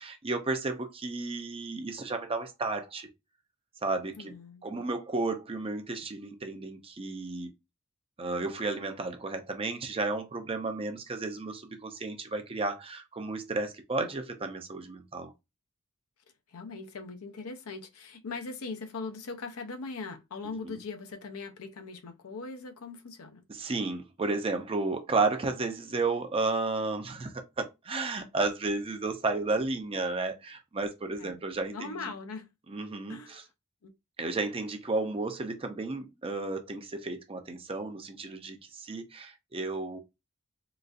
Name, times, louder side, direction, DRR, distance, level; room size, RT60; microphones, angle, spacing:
voice 1, 0.0-3.1 3.8-4.3 4.6-7.5 8.2-15.3 20.6-20.7 23.5-32.0 32.7-33.4 34.2-40.0, right 3 dB, 25° right, 0.5 m, -33 dB
voice 2, 4.2-4.9 16.5-23.4 31.2-31.4 31.7-32.5 33.1-33.4 33.8-33.9, left 4 dB, 75° left, 0.6 m, -40 dB
3.9 x 2.4 x 2.4 m
head